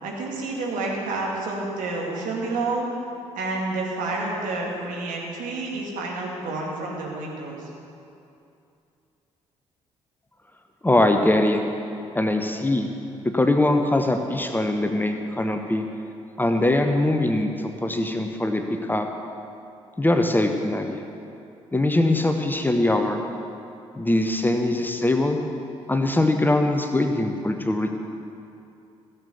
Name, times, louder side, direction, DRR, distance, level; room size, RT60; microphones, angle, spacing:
voice 1, 0.0-2.9 3.3-7.7, right 2 dB, 60° right, -2 dB, 2.3 m, -29 dB
voice 2, 10.8-11.6 12.1-12.9 13.2-15.8 16.4-19.1 20.0-21.0 21.7-23.2 24.0-25.4 25.9-28.0, left 1 dB, 10° left, 5 dB, 0.9 m, -22 dB
15.5 x 7.0 x 6.9 m, 2.6 s
figure-of-eight pair, 45°, 15 cm